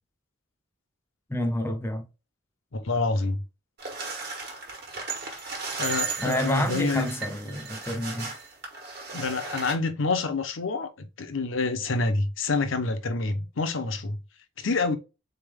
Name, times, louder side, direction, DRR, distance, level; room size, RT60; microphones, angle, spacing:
voice 1, 1.3-2.1 6.2-8.3, left 1 dB, 10° left, 0.6 m, -28 dB
voice 2, 2.7-3.4 5.8-7.1 9.1-14.2 14.6-15.0, left 3 dB, 70° left, 0.7 m, -27 dB
sound 1, 3.8-9.8, right 4 dB, 50° right, 1.4 m, -35 dB
4.0 x 3.5 x 3.5 m
head